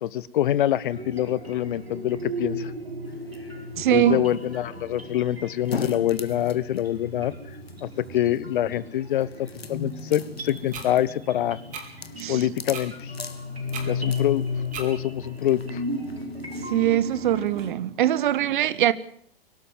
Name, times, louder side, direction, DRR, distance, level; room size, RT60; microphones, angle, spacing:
voice 1, 0.0-2.7 3.8-7.3 7.8-11.6 12.3-13.1 13.8-14.4 14.8-15.8, left 12 dB, 55° left, 19 dB, 1.1 m, -25 dB
sound 1, 0.9-17.7, left 2 dB, 90° right, 4.8 m, -35 dB
sound 2, 3.1-17.7, left 5 dB, 80° left, 1.6 m, -42 dB
voice 2, 3.8-4.2 12.1-12.4 16.5-18.9, right 12 dB, 55° right, 17 dB, 1.4 m, -22 dB
sound 3, 10.7-10.9 11.7-11.9 12.7-12.9 13.7-13.9 14.7-14.9, right 5 dB, 25° right, 4.4 m, -35 dB
23.5 x 12.5 x 9.4 m, 0.63 s
figure-of-eight pair, 105°, 30 cm